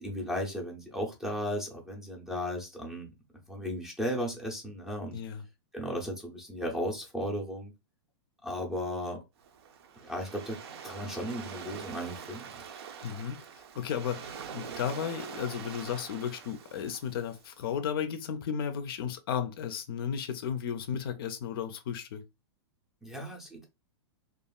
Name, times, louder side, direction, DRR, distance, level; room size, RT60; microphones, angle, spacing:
voice 1, 0.0-3.1 3.5-5.2 5.7-7.7 8.4-9.2 10.0-10.6 10.8-12.6 23.0-23.7, equal, 5° right, 0.5 m, -35 dB
voice 2, 5.1-5.4 13.0-13.4 13.7-22.2, left 8 dB, 55° left, 0.5 m, -34 dB
Waves surf, 9.4-17.6, right 7 dB, 60° right, 0.5 m, -44 dB
2.9 x 2.4 x 2.2 m
supercardioid pair, 155°, 14 cm